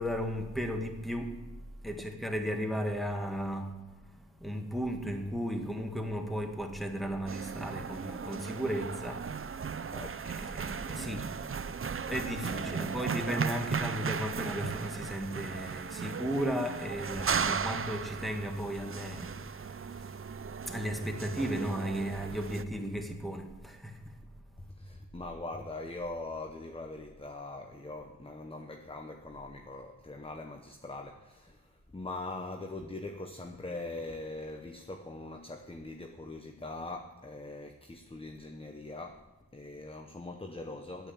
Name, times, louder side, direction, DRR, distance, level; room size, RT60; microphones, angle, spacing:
voice 1, 0.0-1.4 1.8-3.7 4.4-9.8 10.2-11.5 11.9-19.9 20.7-24.1, equal, ahead, 4 dB, 1.6 m, -35 dB
sound 1, 7.3-22.6, right 6 dB, 35° right, 0.5 m, -36 dB
voice 2, 9.8-10.3 12.5-13.0 24.7-39.3 39.5-41.1, left 2 dB, 15° left, 5 dB, 0.8 m, -42 dB
8.9 x 8.5 x 8.6 m, 1.2 s
wide cardioid pair, 65°, 36 cm